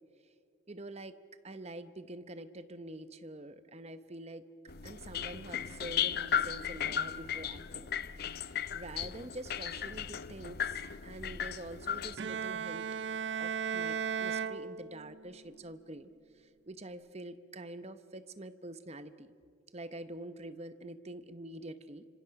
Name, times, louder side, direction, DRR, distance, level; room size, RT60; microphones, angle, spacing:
voice 1, 0.7-1.2 1.4-4.5 4.8-7.9 8.5-12.9 13.4-16.1 16.7-19.3 19.7-22.1, right 1 dB, 30° right, 11 dB, 0.9 m, -46 dB
sound 1, 4.7-12.2, left 8 dB, 50° left, 0.6 m, -36 dB
Bowed string instrument, 12.2-15.3, right 7 dB, 60° right, 0.6 m, -36 dB
29.0 x 26.5 x 5.9 m, 2.5 s
head